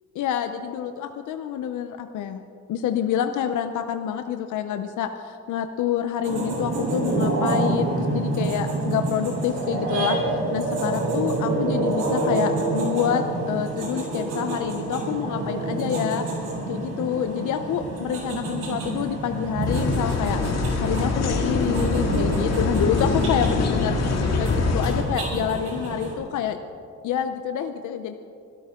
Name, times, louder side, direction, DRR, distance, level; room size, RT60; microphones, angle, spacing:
voice 1, 0.1-2.4 2.7-16.2 16.7-20.4 20.8-24.0 24.4-26.6 27.0-28.1, left 9 dB, 80° left, 7 dB, 0.8 m, -27 dB
sound 1, 6.2-26.1, right 2 dB, 85° right, 4.6 m, -28 dB
sound 2, 19.7-25.0, left 3 dB, 60° left, 2.2 m, -24 dB
25.5 x 13.0 x 3.8 m, 2.5 s
cardioid pair, 90°, 30 cm